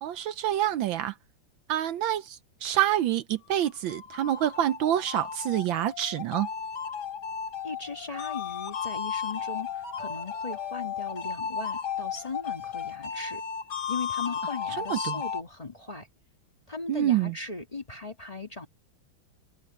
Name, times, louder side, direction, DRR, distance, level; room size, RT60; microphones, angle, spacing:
voice 1, 0.0-1.1 1.7-6.5 14.8-15.2 16.9-17.3, right 12 dB, 75° right, 1.3 m, -27 dB
sound 1, 3.6-15.4, left 7 dB, 50° left, 2.1 m, -34 dB
voice 2, 7.6-13.4 13.9-16.1 16.7-18.7, left 4 dB, 20° left, 1.6 m, -38 dB
omnidirectional pair, 2.3 m